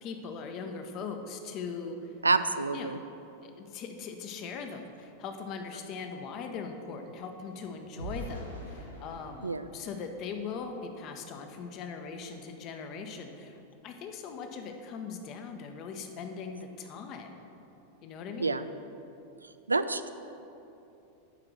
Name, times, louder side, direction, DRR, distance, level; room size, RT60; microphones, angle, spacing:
voice 1, 0.0-2.1 2.7-3.0 3.6-17.4 18.0-18.6, left 5 dB, 35° left, 5 dB, 0.9 m, -40 dB
voice 2, 2.2-3.0 9.4-9.6 18.4-18.6 19.7-20.1, right 3 dB, 80° right, 12 dB, 0.3 m, -27 dB
sound 1, 5.5-10.9 11.4-11.6 12.0-12.2, right 1 dB, 90° left, 1.4 m, -46 dB
11.0 x 4.9 x 6.4 m, 2.8 s
figure-of-eight pair, 90°, 0 cm